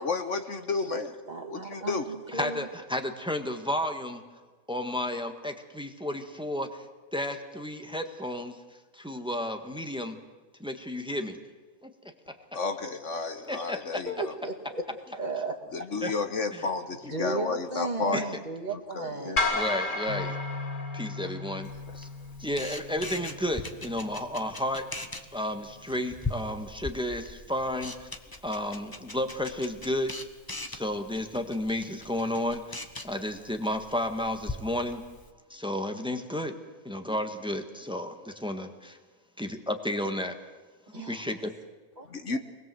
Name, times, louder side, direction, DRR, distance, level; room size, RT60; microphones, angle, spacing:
voice 1, 0.0-1.1 1.5-2.1 12.5-14.4 15.7-18.3 18.9-19.4 42.1-42.4, left 4 dB, 60° left, 8 dB, 1.6 m, -31 dB
voice 2, 1.3-2.7 14.1-14.9 15.1-15.6 17.1-19.4 40.9-41.3 42.0-42.1 42.3-42.4, right 3 dB, 30° right, 3 dB, 2.5 m, -35 dB
voice 3, 2.3-4.2 4.7-8.6 8.9-10.2 10.6-11.4 11.8-11.9 12.3-12.4 13.5-14.0 16.0-16.1 16.5-16.6 18.1-18.3 19.5-20.4 20.9-21.7 22.0-22.1 22.4-24.9 25.3-28.1 28.4-30.1 30.7-32.7 33.0-35.0 35.5-36.6 36.8-39.0 39.4-40.4 40.9-41.5, left 1 dB, 5° right, 6 dB, 1.6 m, -32 dB
sound 1, 19.4-21.7, left 2 dB, 40° left, 1.9 m, -31 dB
Bass guitar, 20.1-26.3, left 3 dB, 80° left, 5.1 m, -42 dB
Camera, 21.6-35.3, left 2 dB, 15° left, 1.2 m, -41 dB
26.0 x 20.0 x 7.8 m, 1.3 s
omnidirectional pair, 1.4 m